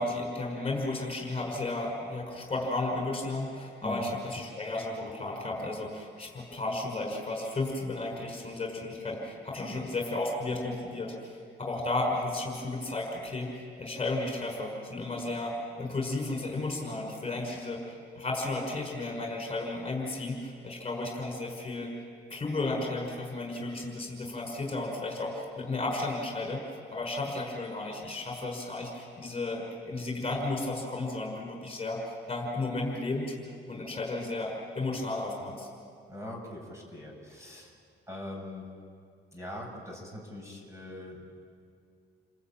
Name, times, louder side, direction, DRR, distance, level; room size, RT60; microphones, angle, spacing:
voice 1, 0.0-21.9 22.3-26.6 26.9-33.3 33.7-35.7, left 2 dB, 30° left, 1 dB, 5.9 m, -33 dB
voice 2, 36.1-37.7 38.1-38.7 39.3-41.3, left 1 dB, 15° right, 1 dB, 7.5 m, -42 dB
29.5 x 20.0 x 9.1 m, 2.3 s
cardioid pair, 90°, 20 cm